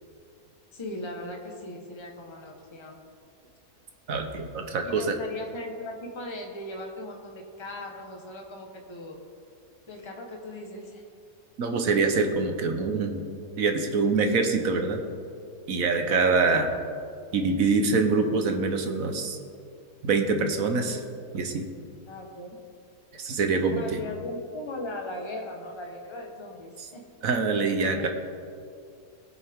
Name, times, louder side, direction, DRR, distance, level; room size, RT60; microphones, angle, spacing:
voice 1, 0.7-3.0 4.8-9.2 9.9-11.0 16.3-16.7 22.1-22.6 23.7-27.0 27.9-28.1, left 1 dB, 20° left, 2 dB, 1.1 m, -38 dB
voice 2, 4.1-5.1 11.6-13.2 13.6-15.0 15.7-16.7 17.3-19.4 20.0-21.0 21.3-21.7 23.2-24.0 27.2-28.1, right 4 dB, 60° right, 5 dB, 1.3 m, -25 dB
19.0 x 7.8 x 3.6 m, 2.3 s
omnidirectional pair, 1.7 m